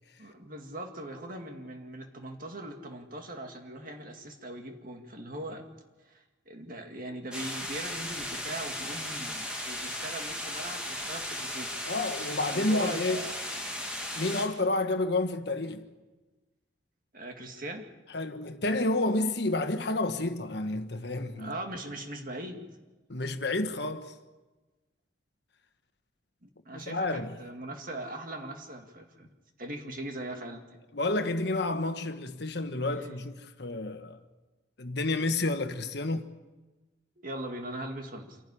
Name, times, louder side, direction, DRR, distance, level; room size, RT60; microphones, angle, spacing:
voice 1, 0.2-5.7 6.1-11.7 12.5-13.4 17.1-17.9 20.2-20.3 21.4-22.7 26.4-29.3 29.6-30.6 37.2-38.4, right 1 dB, 45° right, 2.2 m, -40 dB
sound 1, 7.3-14.5, left 1 dB, 5° right, 2.6 m, -36 dB
voice 2, 11.8-13.2 14.2-15.9 18.1-21.5 23.1-24.1 26.7-27.4 30.9-34.2 34.8-36.3, left 2 dB, 55° left, 1.3 m, -30 dB
27.0 x 11.5 x 9.9 m
head